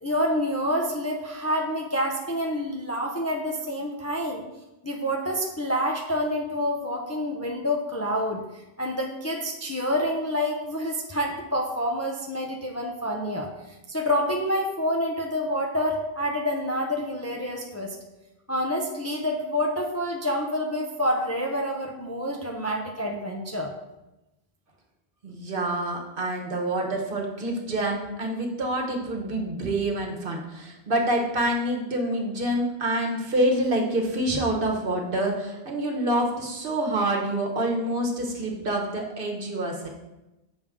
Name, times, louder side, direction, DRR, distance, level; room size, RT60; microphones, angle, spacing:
voice 1, 0.0-4.4 4.8-13.5 13.9-18.0 18.5-23.7, equal, 20° left, 1 dB, 0.5 m, -28 dB
voice 2, 25.2-39.9, right 1 dB, 60° right, 0 dB, 1.2 m, -27 dB
7.2 x 5.2 x 3.6 m, 0.98 s
omnidirectional pair, 1.0 m